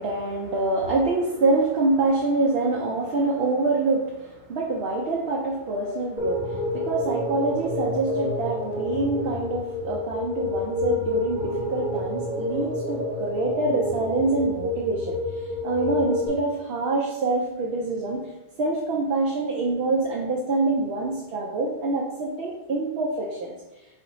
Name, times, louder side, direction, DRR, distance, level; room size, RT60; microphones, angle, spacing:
voice 1, 0.0-15.2 15.6-18.2 18.6-23.5, right 3 dB, 65° right, -1 dB, 0.8 m, -25 dB
sound 1, 6.2-16.3, left 1 dB, 5° right, 0.9 m, -29 dB
4.1 x 2.6 x 3.9 m, 1.1 s
omnidirectional pair, 1.1 m